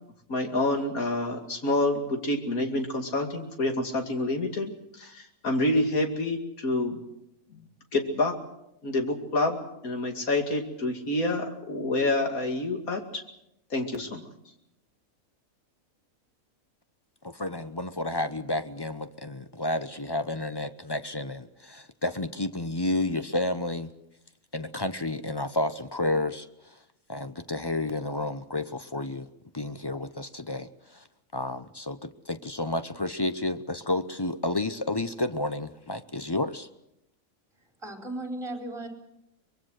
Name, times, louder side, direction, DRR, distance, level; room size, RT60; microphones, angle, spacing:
voice 1, 0.3-4.7 5.0-7.0 7.9-8.3 8.8-9.6 9.8-13.2 13.7-14.2, left 2 dB, 80° left, 4 dB, 3.0 m, -27 dB
voice 2, 17.2-23.9 24.5-26.8 27.1-29.3 29.5-31.0 31.3-36.7, left 2 dB, 25° left, 10 dB, 0.6 m, -31 dB
voice 3, 37.8-38.9, right 1 dB, 20° right, 2 dB, 4.7 m, -35 dB
24.5 x 21.5 x 6.5 m, 0.84 s
omnidirectional pair, 1.5 m